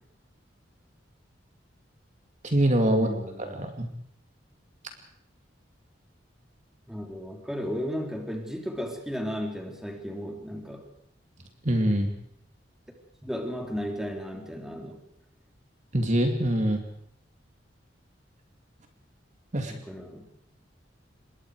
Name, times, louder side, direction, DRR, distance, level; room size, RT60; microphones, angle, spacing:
voice 1, 2.4-3.1 3.4-3.9 11.6-12.1 15.9-16.8 19.5-19.7, right 1 dB, 40° right, 4 dB, 2.6 m, -24 dB
voice 2, 2.9-3.6 6.9-10.8 13.2-15.0 19.6-20.3, equal, 5° right, 2 dB, 3.3 m, -34 dB
26.5 x 22.0 x 5.0 m, 0.70 s
head